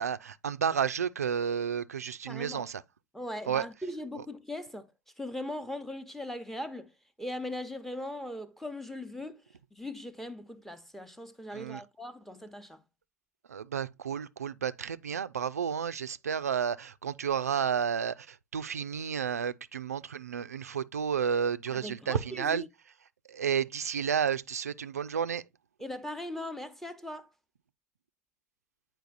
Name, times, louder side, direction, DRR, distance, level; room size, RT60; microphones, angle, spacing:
voice 1, 0.0-2.8 3.5-3.7 4.2-4.3 11.5-11.8 13.5-22.6 23.3-25.4, right 7 dB, 85° right, 0.4 m, -31 dB
voice 2, 2.3-2.7 3.1-4.9 5.2-6.9 7.2-9.4 9.7-12.8 21.7-22.7 25.8-27.3, left 1 dB, 5° left, 0.8 m, -39 dB
9.1 x 4.5 x 2.5 m
figure-of-eight pair, 80°, 8 cm